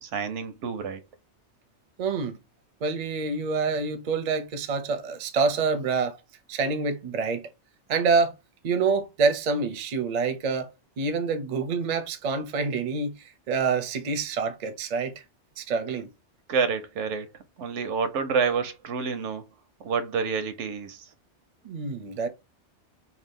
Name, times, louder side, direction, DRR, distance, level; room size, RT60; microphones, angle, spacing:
voice 1, 0.0-1.0 16.5-19.4 19.8-21.1, right 5 dB, 85° right, 0.9 m, -28 dB
voice 2, 2.0-2.4 2.8-6.2 6.5-7.5 7.9-8.3 8.6-10.7 11.0-13.1 13.5-15.1 15.6-16.1 21.6-22.3, right 4 dB, 50° right, 0.5 m, -26 dB
2.7 x 2.3 x 3.5 m
omnidirectional pair, 1.2 m